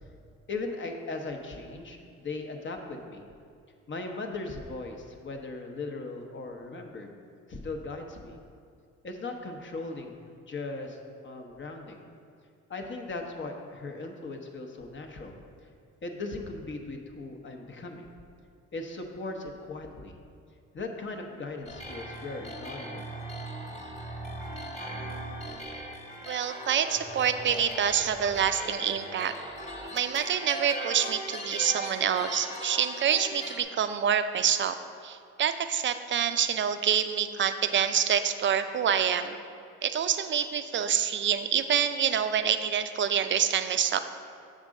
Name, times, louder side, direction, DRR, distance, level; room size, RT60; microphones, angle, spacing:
voice 1, 0.5-3.2 3.9-7.1 7.5-8.4 9.0-11.0 11.2-12.1 12.7-15.3 16.0-18.1 18.7-20.1 20.7-23.1, left 3 dB, 40° left, 3 dB, 0.8 m, -38 dB
sound 1, 21.7-33.6, right 1 dB, 20° left, 1.3 m, -39 dB
voice 2, 26.2-29.3 29.9-34.8 35.0-39.4 39.8-44.0, right 8 dB, 40° right, 10 dB, 0.5 m, -27 dB
7.3 x 3.7 x 6.2 m, 2.4 s
cardioid pair, 90°, 30 cm